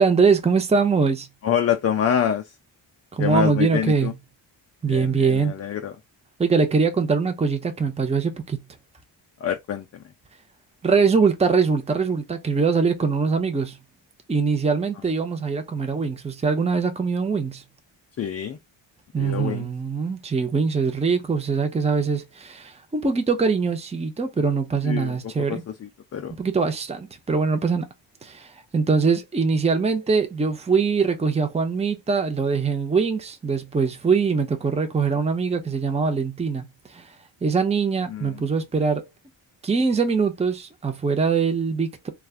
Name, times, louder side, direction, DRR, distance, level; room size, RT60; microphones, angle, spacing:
voice 1, 0.0-1.3 3.1-4.1 4.8-5.5 6.4-8.6 10.8-13.8 14.3-17.6 19.1-25.6 26.4-27.9 28.2-36.6 36.9-37.1 37.4-39.0 39.6-42.1, right 5 dB, 15° right, 0.6 m, -22 dB
voice 2, 1.4-2.4 3.2-4.1 4.9-5.9 9.4-9.9 18.2-18.6 19.2-19.7 24.8-25.6 26.1-26.3 38.1-38.4, left 9 dB, 35° left, 0.4 m, -26 dB
3.2 x 2.3 x 2.4 m
cardioid pair, 65°, 47 cm